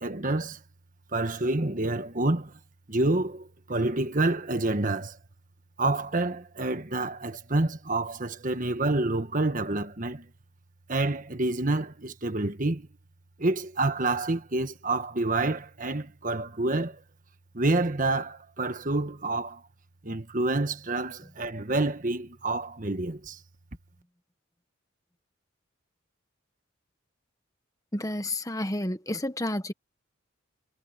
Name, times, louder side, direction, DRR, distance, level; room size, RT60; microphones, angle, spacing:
voice 1, 0.0-0.6 1.1-2.5 2.9-5.2 5.8-10.2 10.9-12.9 13.4-17.0 17.5-19.6 20.0-23.4, right 2 dB, 40° right, 1.5 m, -28 dB
voice 2, 27.9-29.7, left 1 dB, 15° left, 1.5 m, -30 dB
head